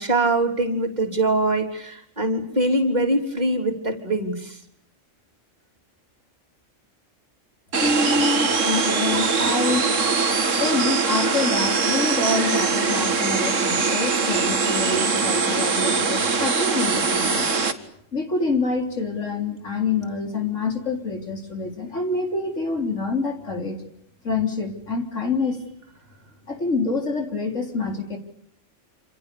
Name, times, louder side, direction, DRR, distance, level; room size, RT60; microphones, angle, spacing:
voice 1, 0.0-4.6, right 2 dB, 35° right, 1 dB, 3.8 m, -23 dB
sound 1, 7.7-17.7, right 4 dB, 75° right, 2.1 m, -22 dB
voice 2, 7.8-9.9 10.6-17.5 18.1-23.8 24.2-25.6 26.5-28.2, left 3 dB, 75° left, 4 dB, 4.1 m, -26 dB
27.5 x 27.5 x 6.9 m, 0.73 s
omnidirectional pair, 1.3 m